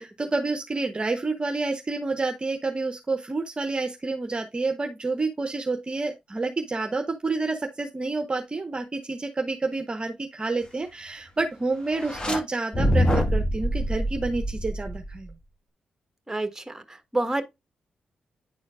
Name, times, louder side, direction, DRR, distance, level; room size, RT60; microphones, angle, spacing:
voice 1, 0.0-15.3, right 3 dB, 35° right, 0.8 m, -29 dB
sound 1, 11.9-12.4 12.7-15.3, equal, 35° left, 1.9 m, -25 dB
voice 2, 16.3-17.4, right 2 dB, 15° right, 1.4 m, -28 dB
10.0 x 4.3 x 2.4 m
supercardioid pair, 40°, 3 cm